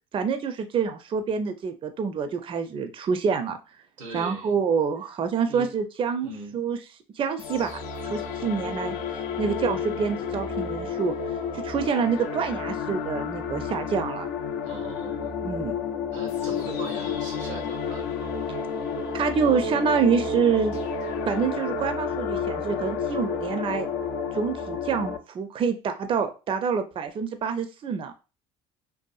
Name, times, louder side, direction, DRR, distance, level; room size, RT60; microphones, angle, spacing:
voice 1, 0.1-3.6 4.1-6.8 7.2-7.8 8.0-11.1 11.5-14.3 15.4-15.7 18.5-18.6 19.1-20.8 21.3-23.9 24.3-28.1, right 6 dB, 35° right, 8 dB, 0.4 m, -27 dB
voice 2, 4.0-4.5 5.5-5.7 6.2-6.6 14.6-15.4 16.1-18.1, right 3 dB, 90° right, 4 dB, 0.7 m, -40 dB
sound 1, 7.4-25.2, left 5 dB, 70° left, 0.4 m, -31 dB
2.6 x 2.3 x 2.3 m, 0.32 s
hypercardioid pair, 70°, 16 cm